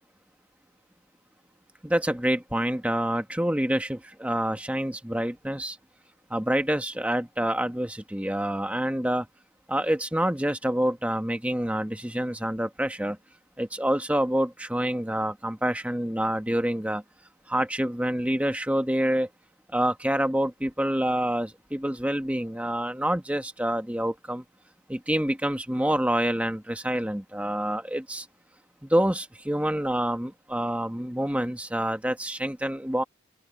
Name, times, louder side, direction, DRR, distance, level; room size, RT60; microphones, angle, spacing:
voice 1, 1.8-5.8 6.3-9.3 9.7-13.2 13.6-17.0 17.5-19.3 19.7-24.4 24.9-28.2 28.9-33.0, right 1 dB, 5° right, 1.2 m, -27 dB
open air
head